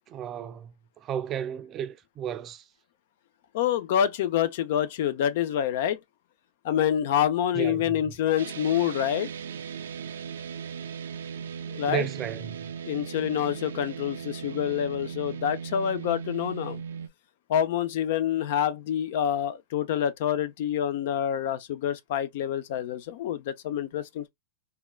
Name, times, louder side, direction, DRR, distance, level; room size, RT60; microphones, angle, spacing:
voice 1, 0.1-2.6 7.5-8.2 11.9-12.7, right 10 dB, 30° right, 0.4 m, -34 dB
voice 2, 3.5-6.0 6.6-9.3 11.7-12.1 12.8-16.8 17.5-24.3, left 10 dB, 65° left, 0.4 m, -27 dB
sound 1, 8.4-17.1, right 7 dB, 90° right, 0.4 m, -38 dB
3.4 x 2.2 x 2.3 m
hypercardioid pair, 125°, 0 cm